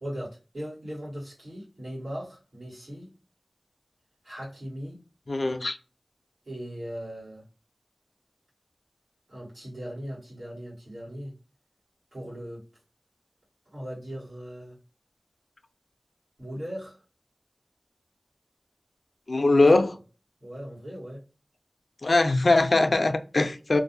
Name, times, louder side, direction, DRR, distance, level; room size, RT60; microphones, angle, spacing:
voice 1, 0.0-3.1 4.2-5.0 6.4-7.4 9.3-11.3 12.1-12.6 13.7-14.8 16.4-17.0 19.5-19.7 20.4-21.2, equal, 85° right, 1.4 m, -38 dB
voice 2, 5.3-5.8 19.3-20.0 22.0-23.8, left 2 dB, 70° left, 0.4 m, -21 dB
2.5 x 2.0 x 2.5 m
wide cardioid pair, 50°, 0 cm